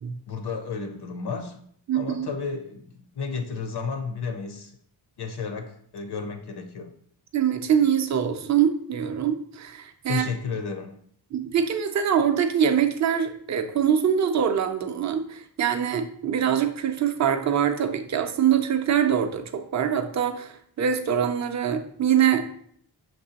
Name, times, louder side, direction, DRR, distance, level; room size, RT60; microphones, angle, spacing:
voice 1, 0.3-1.6 1.9-4.7 5.2-6.9 10.1-11.0, left 5 dB, 60° left, 6 dB, 0.5 m, -32 dB
voice 2, 1.9-2.3 7.3-10.3 11.3-22.5, right 8 dB, 40° right, 6 dB, 0.4 m, -24 dB
6.0 x 3.0 x 2.8 m, 0.63 s
wide cardioid pair, 150°, 46 cm